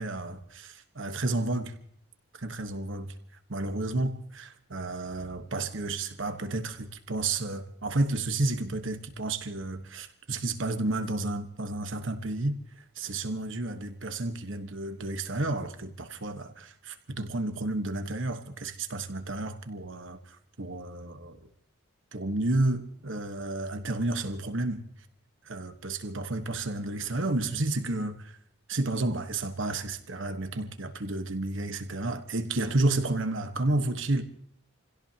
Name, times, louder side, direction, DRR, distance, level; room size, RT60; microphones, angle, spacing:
voice 1, 0.0-1.8 2.3-3.1 3.5-21.4 22.1-24.9 25.4-28.4 28.7-34.2, right 2 dB, 65° right, 1.4 m, -31 dB
29.0 x 17.0 x 2.9 m
head